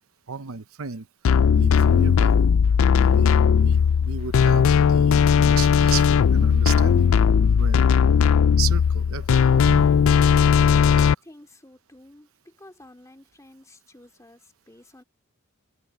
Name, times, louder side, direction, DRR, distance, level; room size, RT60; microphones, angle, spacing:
voice 1, 0.3-1.1 1.5-2.4 3.0-3.3 3.6-7.2 7.6-7.9 8.6-10.1, right 6 dB, 85° right, 0.9 m, -34 dB
sound 1, 1.2-11.1, left 6 dB, 70° left, 0.4 m, -17 dB
voice 2, 11.2-15.0, left 1 dB, 15° left, 2.5 m, -50 dB
head